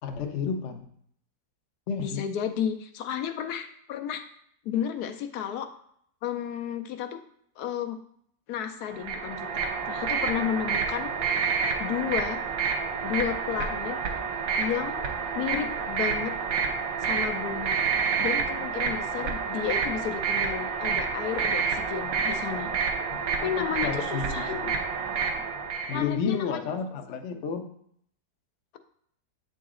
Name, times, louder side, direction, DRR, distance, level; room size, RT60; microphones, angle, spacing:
voice 1, 0.0-0.9 1.9-2.2 23.4-24.8 25.9-27.7, left 6 dB, 60° left, 5 dB, 0.8 m, -31 dB
voice 2, 2.0-4.2 4.6-5.7 6.2-7.2 7.6-8.0 8.5-11.3 11.8-12.4 13.0-14.0 14.6-15.0 15.3-16.3 17.0-17.8 18.2-22.7 23.4-24.5 25.9-26.6, left 9 dB, 75° left, 6 dB, 1.1 m, -32 dB
sound 1, 8.9-26.0, right 6 dB, 65° right, 1.1 m, -29 dB
7.8 x 4.0 x 3.7 m, 0.67 s
omnidirectional pair, 1.7 m